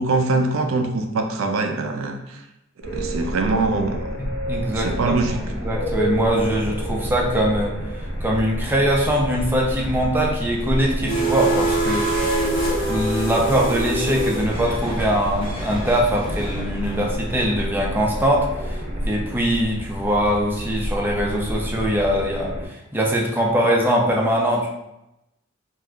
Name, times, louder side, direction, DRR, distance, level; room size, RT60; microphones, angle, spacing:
voice 1, 0.0-2.4 2.8-4.2 4.7-5.4, right 3 dB, 85° right, 4 dB, 0.4 m, -23 dB
sound 1, 2.8-22.6, equal, 80° left, 1.2 m, -29 dB
voice 2, 4.5-5.2 5.5-7.8 8.2-12.1 12.9-18.8 19.1-24.7, equal, 10° right, -2 dB, 0.5 m, -22 dB
sound 2, 11.1-17.4, right 2 dB, 45° left, 1.1 m, -26 dB
3.5 x 2.4 x 2.2 m, 0.89 s
head